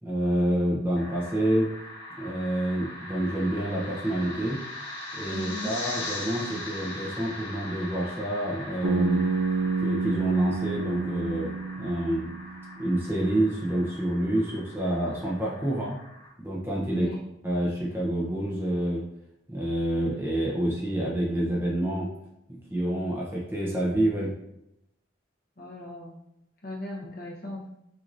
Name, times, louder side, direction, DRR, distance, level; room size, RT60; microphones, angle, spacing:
voice 1, 0.0-1.7 2.2-4.6 5.1-9.2 9.8-12.3 12.8-16.0 16.4-17.1 17.4-19.0 19.5-22.1 22.5-24.3, right 1 dB, 10° right, -4 dB, 0.7 m, -28 dB
sound 1, 1.0-16.3, left 2 dB, 60° left, 1.6 m, -40 dB
voice 2, 5.3-5.7 16.9-17.2 25.6-26.2 26.6-27.7, left 1 dB, 45° left, -3 dB, 0.9 m, -37 dB
Bass guitar, 8.8-12.8, right 4 dB, 85° right, 0.3 m, -29 dB
6.0 x 2.8 x 2.5 m, 0.83 s
head